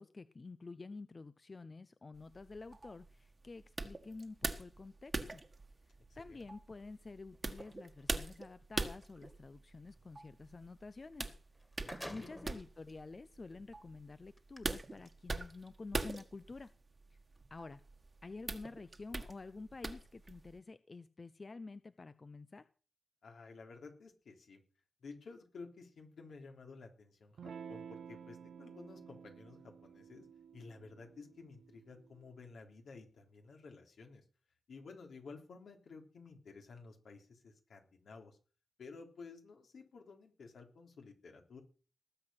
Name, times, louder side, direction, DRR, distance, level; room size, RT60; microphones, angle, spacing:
voice 1, 0.0-5.4 6.2-11.3 12.1-16.7 17.5-17.8 18.2-22.7, left 3 dB, 35° left, 13 dB, 0.6 m, -49 dB
sound 1, 2.1-20.6, right 3 dB, 30° right, 1.4 m, -44 dB
sound 2, 7.3-8.3 11.1-11.2 11.5-12.6 13.3-13.4 14.4-14.6, equal, 5° left, 2.0 m, -50 dB
voice 2, 11.8-12.3 23.2-24.6 25.0-30.3 30.5-34.2 34.7-38.4 38.8-41.6, left 4 dB, 80° left, 3 dB, 3.5 m, -53 dB
Electric guitar / Strum, 27.4-32.5, right 7 dB, 85° right, 0.7 m, -52 dB
19.0 x 7.9 x 5.8 m, 0.37 s
wide cardioid pair, 115°, 0 cm